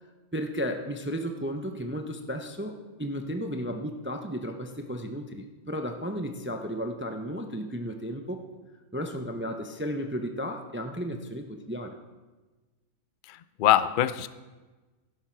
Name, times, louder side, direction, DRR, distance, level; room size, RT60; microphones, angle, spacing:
voice 1, 0.3-8.4 8.9-12.0, equal, 15° right, 5 dB, 0.3 m, -34 dB
voice 2, 13.3-14.3, left 12 dB, 80° left, 14 dB, 0.4 m, -23 dB
11.0 x 11.0 x 4.5 m, 1.2 s
omnidirectional pair, 1.5 m